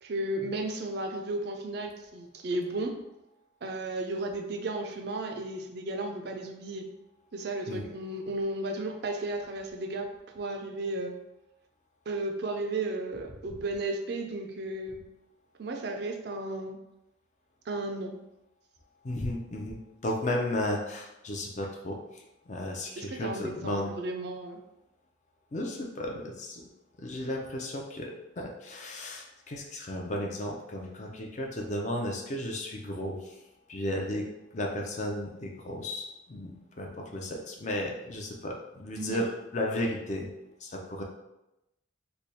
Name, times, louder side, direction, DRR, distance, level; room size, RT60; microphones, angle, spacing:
voice 1, 0.0-3.0 3.6-6.9 7.3-11.1 12.1-15.0 15.6-16.8 17.7-18.2 23.0-24.6 39.0-39.2, right 2 dB, 55° right, 3 dB, 0.4 m, -34 dB
voice 2, 19.0-23.9 25.5-26.6 27.0-33.4 33.7-34.2 34.5-40.3 40.6-41.0, left 1 dB, 35° left, 1 dB, 0.5 m, -34 dB
3.3 x 2.3 x 4.1 m, 0.91 s
head